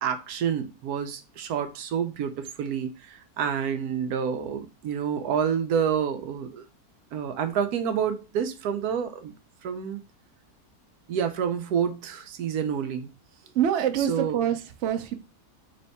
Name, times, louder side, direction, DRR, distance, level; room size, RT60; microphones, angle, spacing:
voice 1, 0.0-2.3 2.6-6.6 7.1-9.3 9.6-10.0 11.1-13.1 14.1-14.4, right 7 dB, 80° right, 1.1 m, -28 dB
voice 2, 13.5-15.1, right 9 dB, 60° right, 0.9 m, -25 dB
3.5 x 3.3 x 4.1 m
omnidirectional pair, 1.6 m